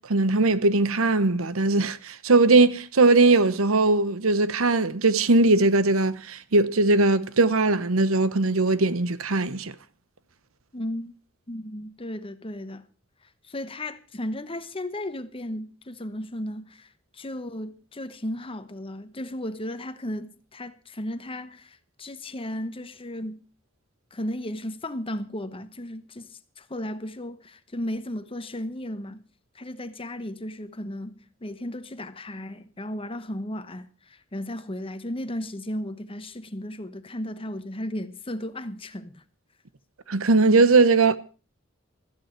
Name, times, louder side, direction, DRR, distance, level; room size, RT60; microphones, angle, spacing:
voice 1, 0.1-9.7 40.1-41.2, right 3 dB, 85° right, 1.0 m, -20 dB
voice 2, 10.7-11.1 11.5-12.9 13.4-23.4 24.1-29.2 29.5-39.2, left 1 dB, 25° left, 1.0 m, -35 dB
16.0 x 13.5 x 4.6 m
head